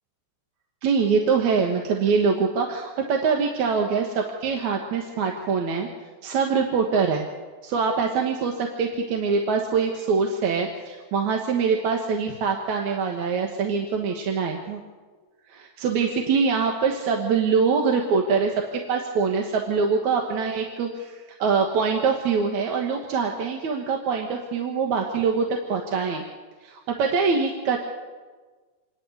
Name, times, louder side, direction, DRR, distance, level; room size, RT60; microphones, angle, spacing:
voice 1, 0.8-5.9 6.2-7.3 7.6-14.8 15.5-18.6 18.9-26.2 26.6-27.8, right 5 dB, 70° right, 2 dB, 2.6 m, -24 dB
26.5 x 10.5 x 9.4 m, 1.4 s
omnidirectional pair, 3.5 m